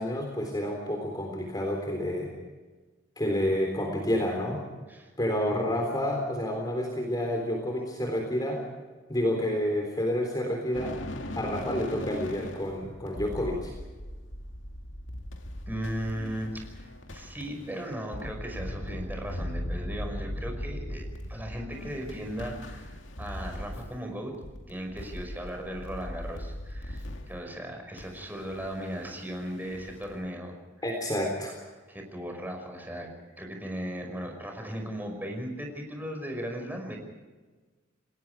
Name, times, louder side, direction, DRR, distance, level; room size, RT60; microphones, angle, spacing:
voice 1, 0.0-2.3 3.2-4.6 5.2-8.6 9.1-11.0 11.4-13.7 30.8-31.5, left 1 dB, 20° left, 2 dB, 3.7 m, -29 dB
sound 1, 10.7-24.1 24.3-27.4 28.0-30.2, left 1 dB, 70° left, 2.3 m, -39 dB
voice 2, 15.7-24.3 24.7-30.6 31.9-33.1 33.4-37.0, equal, 10° right, 3 dB, 5.6 m, -37 dB
29.5 x 19.5 x 4.8 m, 1.3 s
head